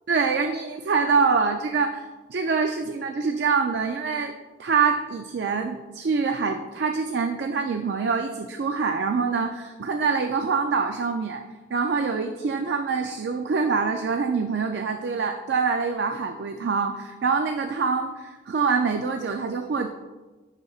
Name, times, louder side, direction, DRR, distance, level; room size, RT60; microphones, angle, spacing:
voice 1, 0.1-4.3 4.6-11.4 11.7-19.9, right 5 dB, 65° right, 5 dB, 0.4 m, -25 dB
9.6 x 6.3 x 2.4 m, 1.2 s
head